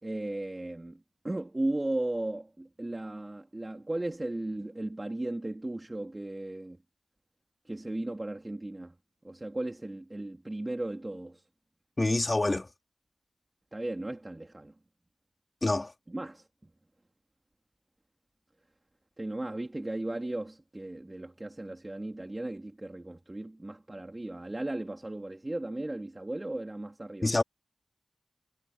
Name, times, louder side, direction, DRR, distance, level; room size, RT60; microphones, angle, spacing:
voice 1, 0.0-6.8 7.7-8.9 9.2-11.4 13.7-14.7 16.1-16.5 19.2-27.3, right 1 dB, 20° right, 3.6 m, -36 dB
voice 2, 12.0-12.7 15.6-15.9 27.2-27.4, left 2 dB, 30° left, 2.6 m, -26 dB
wide cardioid pair, 75°, 0 cm